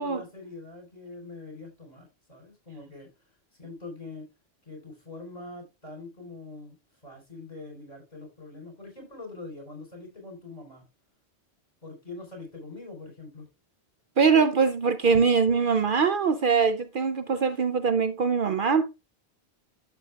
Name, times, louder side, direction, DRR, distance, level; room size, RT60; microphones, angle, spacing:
voice 1, 0.0-3.1 3.6-4.3 4.6-10.8 11.8-13.4 15.1-15.2, left 3 dB, 40° left, 4.6 m, -43 dB
voice 2, 14.2-18.9, right 5 dB, 55° right, 0.7 m, -22 dB
12.0 x 7.0 x 2.3 m
omnidirectional pair, 1.1 m